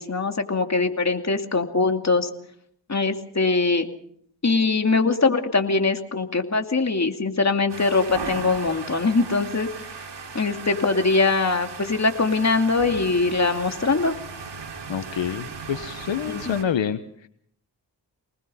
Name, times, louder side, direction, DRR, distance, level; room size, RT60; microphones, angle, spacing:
voice 1, 0.0-2.3 2.9-3.9 4.4-9.7 10.3-14.1 16.3-16.6, left 3 dB, 35° left, 5 dB, 2.5 m, -22 dB
sound 1, 7.7-16.6, right 5 dB, 70° right, 3.0 m, -37 dB
voice 2, 14.9-17.0, left 8 dB, 80° left, 11 dB, 1.1 m, -27 dB
24.5 x 20.0 x 5.6 m, 0.66 s
cardioid pair, 60°, 44 cm